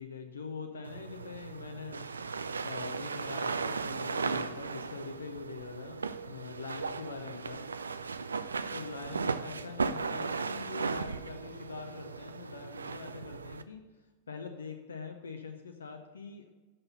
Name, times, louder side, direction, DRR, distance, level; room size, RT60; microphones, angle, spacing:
voice 1, 0.0-2.1 2.3-7.7 8.7-13.8 14.3-16.5, left 5 dB, 70° left, 5 dB, 0.6 m, -44 dB
sound 1, 0.8-13.6, right 4 dB, 75° right, 0.3 m, -36 dB
6.5 x 5.9 x 5.5 m, 1.3 s
figure-of-eight pair, 90°, 0 cm